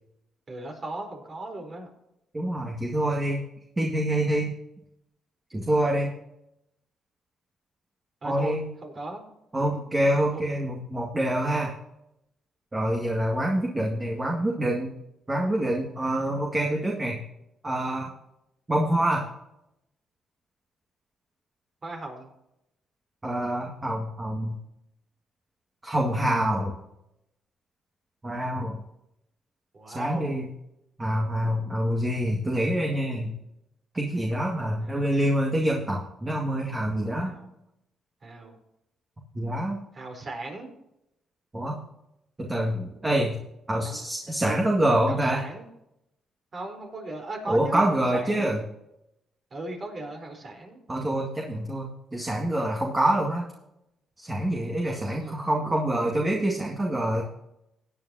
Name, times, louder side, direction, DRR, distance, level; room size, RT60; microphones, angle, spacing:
voice 1, 0.5-1.9 8.2-8.5 8.8-9.2 9.6-9.7 10.3-10.4 21.8-22.3 29.7-30.4 34.8-35.1 37.2-37.5 38.2-38.6 39.9-40.7 43.8-44.0 44.4-44.6 45.1-45.7 46.5-48.5 49.5-50.8 54.9-55.4, right 2 dB, 45° right, 3 dB, 4.1 m, -37 dB
voice 2, 2.3-3.4 3.8-4.5 5.5-6.1 8.2-8.7 9.5-11.7 12.7-14.9 15.3-17.2 17.6-18.1 18.7-19.3 23.2-24.6 25.8-26.7 28.2-28.8 29.9-30.5 31.0-33.4 33.9-37.4 39.3-39.8 41.5-41.8 42.4-43.4 43.7-45.4 47.5-48.6 50.9-53.5 54.2-57.2, right 1 dB, 20° right, -1 dB, 2.0 m, -26 dB
17.0 x 9.0 x 2.8 m, 0.84 s
cardioid pair, 75°, 0 cm